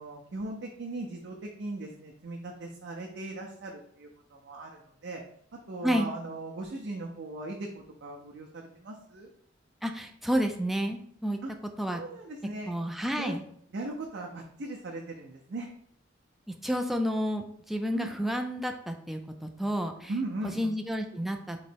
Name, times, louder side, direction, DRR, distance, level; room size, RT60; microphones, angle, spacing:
voice 1, 0.0-5.2 5.7-9.3 11.4-11.5 11.9-12.8 13.2-13.4 13.7-15.7 17.9-18.1 20.1-20.7, right 2 dB, 60° right, 0 dB, 0.5 m, -38 dB
voice 2, 9.8-11.4 11.8-12.0 12.7-13.4 16.5-20.1 20.4-21.6, equal, ahead, 4 dB, 0.3 m, -30 dB
3.8 x 3.1 x 4.4 m, 0.66 s
head